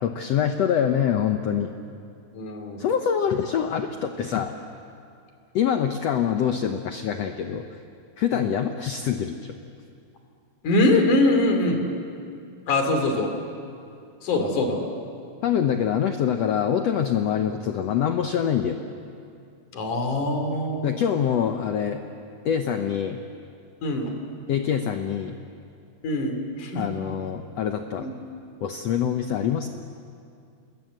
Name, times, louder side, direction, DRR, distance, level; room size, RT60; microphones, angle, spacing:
voice 1, 0.0-1.7 2.8-4.5 5.5-7.7 8.2-9.6 15.4-18.8 20.8-22.0 22.4-23.2 24.5-25.4 26.7-28.1 28.6-29.7, left 8 dB, 90° left, 6 dB, 1.4 m, -25 dB
voice 2, 2.3-2.8 8.3-8.5 10.6-11.9 12.7-13.3 14.2-14.8 19.7-21.1 23.8-24.1 26.0-26.8 28.0-28.1, left 2 dB, 60° left, 4 dB, 4.2 m, -23 dB
28.0 x 21.0 x 8.0 m, 2.4 s
omnidirectional pair, 4.2 m